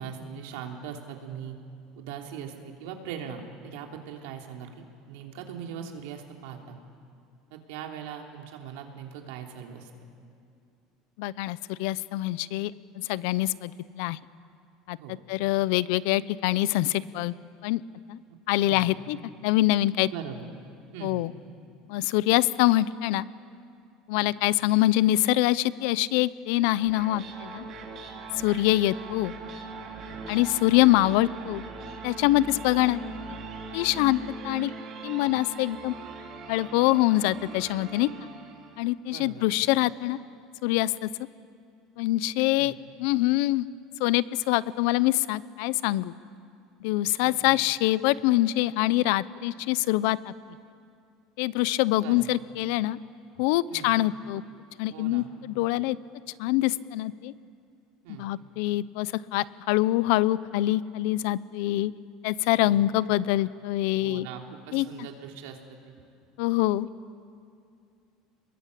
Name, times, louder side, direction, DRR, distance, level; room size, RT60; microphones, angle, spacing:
voice 1, 0.0-1.6 1.9-6.8 7.5-9.9 15.0-15.2 18.3-18.4 18.6-18.9 20.1-20.5 20.9-21.3 24.1-24.3 30.0-30.2 39.1-39.5 42.6-42.7 47.2-47.6 52.0-52.4 53.7-53.9 54.9-55.3 58.0-58.2 62.6-62.8 64.0-65.9, right 8 dB, 90° right, 2 dB, 3.2 m, -40 dB
voice 2, 11.2-13.7 14.0-14.2 14.9-17.3 17.6-17.8 18.1-18.2 18.5-19.2 19.4-20.1 21.0-21.3 21.9-23.3 24.1-27.7 28.4-29.3 30.3-31.6 32.0-33.0 33.7-34.2 34.4-34.7 35.0-35.9 36.5-38.1 38.8-40.2 40.6-41.1 42.0-42.7 43.0-43.7 44.0-46.1 46.8-50.3 51.4-53.0 53.4-54.4 54.8-56.0 56.4-57.3 58.2-61.9 62.2-64.3 64.7-64.9 66.4-66.9, left 16 dB, 65° left, 18 dB, 0.6 m, -24 dB
sound 1, 26.7-38.9, right 3 dB, 35° right, 3.4 m, -41 dB
29.5 x 21.5 x 8.4 m, 2.4 s
cardioid pair, 180°, 0 cm